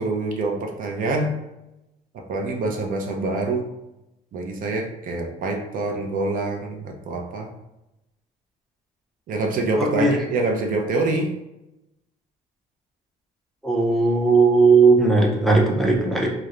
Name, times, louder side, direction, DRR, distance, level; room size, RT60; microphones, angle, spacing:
voice 1, 0.0-1.3 2.1-3.7 4.3-7.5 9.3-11.3, right 2 dB, 55° right, 2 dB, 0.5 m, -25 dB
voice 2, 9.8-10.2 13.6-16.3, right 3 dB, ahead, -2 dB, 0.4 m, -17 dB
2.3 x 2.0 x 3.0 m, 0.92 s
cardioid pair, 110°, 17 cm